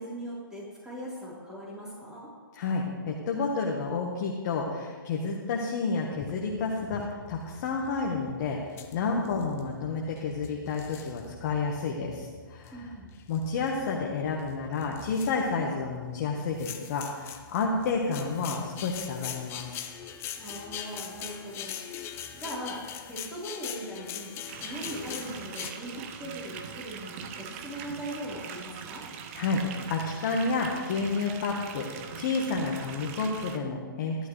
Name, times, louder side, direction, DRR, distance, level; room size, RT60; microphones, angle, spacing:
voice 1, 0.0-2.3 12.7-13.1 20.4-22.0 22.3-22.8 23.1-24.3 24.6-29.0, right 1 dB, 5° right, -7 dB, 3.9 m, -40 dB
voice 2, 2.5-12.8 13.3-19.8 29.3-34.2, left 4 dB, 45° left, -1 dB, 1.3 m, -30 dB
sound 1, 6.1-25.7, left 9 dB, 20° left, 0.7 m, -43 dB
sound 2, 24.5-33.6, right 7 dB, 35° right, 0.9 m, -42 dB
13.5 x 11.5 x 3.2 m, 1.6 s
hypercardioid pair, 135°, 12 cm